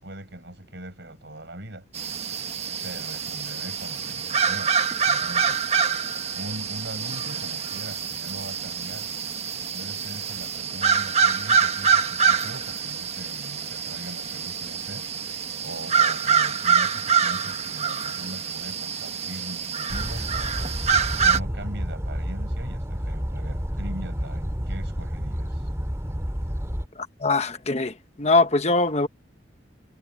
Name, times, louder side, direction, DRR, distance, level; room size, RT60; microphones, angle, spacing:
voice 1, 0.0-1.9 2.8-4.8 5.1-5.7 6.3-9.1 9.7-15.1 15.3-20.8 21.2-25.7, right 1 dB, 65° right, 5.1 m, -40 dB
sound 1, 1.9-21.4, right 6 dB, 35° right, 1.4 m, -25 dB
sound 2, 19.9-26.9, equal, 15° right, 2.6 m, -30 dB
voice 2, 27.2-29.1, left 3 dB, 35° left, 1.1 m, -22 dB
head